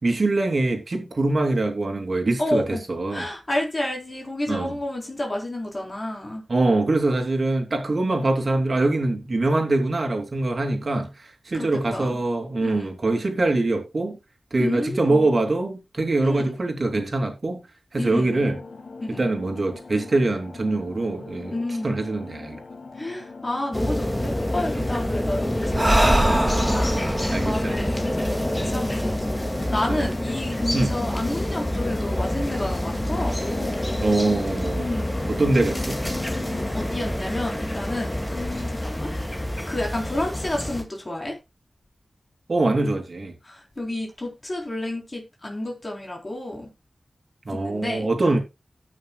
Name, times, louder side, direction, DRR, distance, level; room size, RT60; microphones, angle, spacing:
voice 1, 0.0-2.6 2.9-3.3 4.5-4.7 6.5-14.2 14.5-17.6 17.9-18.6 19.1-21.6 21.8-22.6 27.3-27.8 28.6-28.7 29.9-30.1 30.7-30.9 34.0-34.9 35.3-36.0 42.5-43.3 47.4-48.4, right 2 dB, 60° right, 2.9 m, -23 dB
voice 2, 2.4-2.8 3.1-6.4 11.5-12.2 12.6-12.9 14.6-15.3 16.2-16.5 18.0-18.5 19.0-19.3 21.5-22.0 22.9-26.9 27.4-34.0 34.8-35.3 36.7-39.1 39.6-41.4 43.4-46.7 47.5-48.4, left 1 dB, 35° left, 3.8 m, -30 dB
sound 1, 18.3-36.9, left 3 dB, 75° left, 1.8 m, -40 dB
sound 2, 23.7-40.8, left 1 dB, 15° left, 2.2 m, -27 dB
Breathing, 25.7-29.2, right 1 dB, 20° right, 2.5 m, -23 dB
18.5 x 6.4 x 2.3 m
wide cardioid pair, 55°, 0 cm